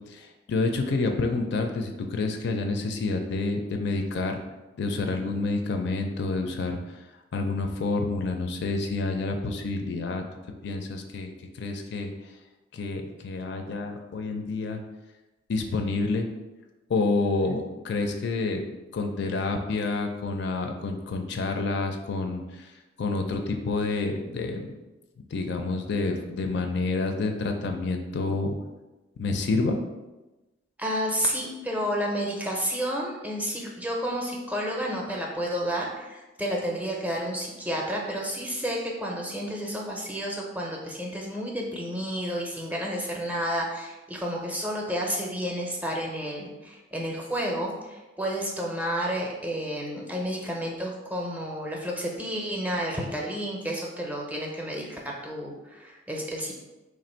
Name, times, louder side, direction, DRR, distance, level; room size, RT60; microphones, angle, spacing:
voice 1, 0.1-4.4 4.8-6.9 7.3-10.2 10.6-12.1 12.7-14.8 15.5-16.3 16.9-18.6 18.9-24.7 25.3-28.6 29.2-29.8, left 3 dB, 60° left, 4 dB, 0.4 m, -28 dB
voice 2, 30.8-56.5, equal, 10° right, -2 dB, 0.5 m, -31 dB
3.2 x 2.5 x 4.2 m, 1.1 s
head